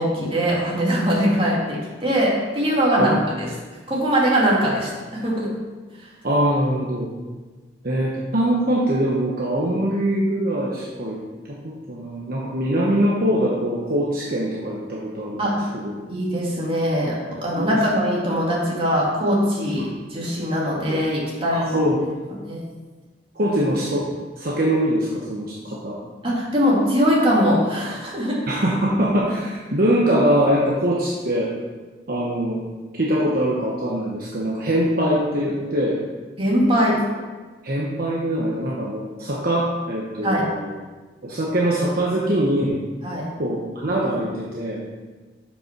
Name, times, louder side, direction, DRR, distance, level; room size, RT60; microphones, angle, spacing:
voice 1, 0.0-3.5 3.9-5.5 6.0-6.1 15.4-15.6 16.1-21.8 22.5-22.6 23.5-23.6 26.2-28.4 36.4-37.0 40.2-40.5 43.0-43.3, equal, 30° right, -5 dB, 2.6 m, -21 dB
voice 2, 6.2-7.1 7.8-11.2 11.5-15.8 17.6-17.8 21.5-22.0 23.3-24.1 24.4-26.0 28.5-31.5 32.1-32.6 32.9-36.0 37.6-40.7 41.2-42.8 43.4-44.8, right 1 dB, 55° right, -4 dB, 1.1 m, -23 dB
7.3 x 5.7 x 6.0 m, 1.3 s
head